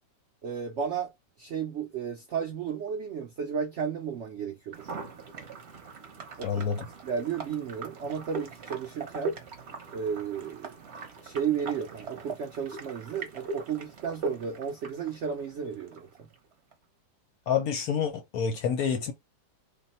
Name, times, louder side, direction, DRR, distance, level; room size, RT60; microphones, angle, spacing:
voice 1, 0.4-1.1 1.4-4.9 6.4-6.6 7.0-9.4 9.9-16.1, right 7 dB, 80° right, 0.6 m, -33 dB
sound 1, 4.7-16.7, right 3 dB, 45° right, 0.9 m, -41 dB
voice 2, 6.4-6.9 17.5-19.1, left 7 dB, 65° left, 0.9 m, -28 dB
3.4 x 2.2 x 4.1 m
omnidirectional pair, 2.0 m